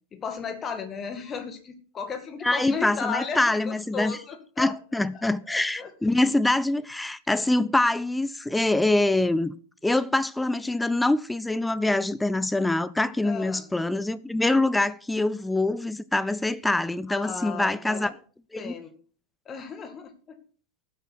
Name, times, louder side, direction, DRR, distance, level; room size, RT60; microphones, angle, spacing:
voice 1, 0.1-4.8 5.2-5.9 13.2-13.6 17.1-18.1 18.6-18.9 19.5-20.4, left 6 dB, 25° left, 2.1 m, -35 dB
voice 2, 2.4-4.2 4.6-9.5 9.8-18.1 18.5-18.7, left 2 dB, 5° left, 0.6 m, -24 dB
13.5 x 8.0 x 6.0 m
figure-of-eight pair, 90°, 0 cm